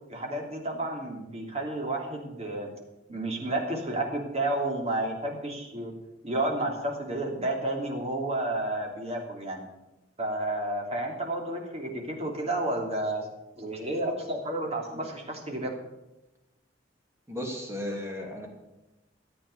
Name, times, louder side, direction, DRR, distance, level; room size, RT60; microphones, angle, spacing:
voice 1, 0.1-2.7 3.1-5.9 6.2-9.6 10.2-13.3 13.6-15.7, right 1 dB, 35° right, 0 dB, 3.1 m, -31 dB
voice 2, 17.3-18.5, left 1 dB, 15° right, 0 dB, 2.9 m, -35 dB
14.5 x 8.7 x 8.1 m, 0.97 s
head